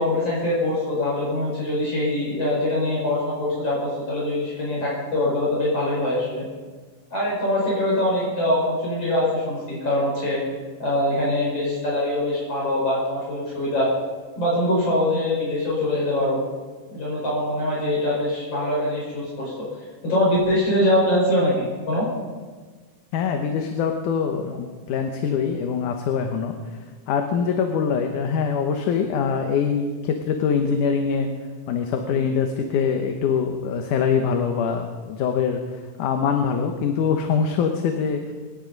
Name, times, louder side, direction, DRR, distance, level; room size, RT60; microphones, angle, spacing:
voice 1, 0.0-6.4 7.1-10.4 10.8-13.9 14.4-16.4 16.9-19.5 20.0-22.1, left 1 dB, 45° left, -6 dB, 6.1 m, -23 dB
voice 2, 23.1-31.3 31.7-38.3, left 6 dB, 75° left, 4 dB, 2.5 m, -24 dB
25.0 x 10.5 x 5.3 m, 1.4 s
omnidirectional pair, 3.7 m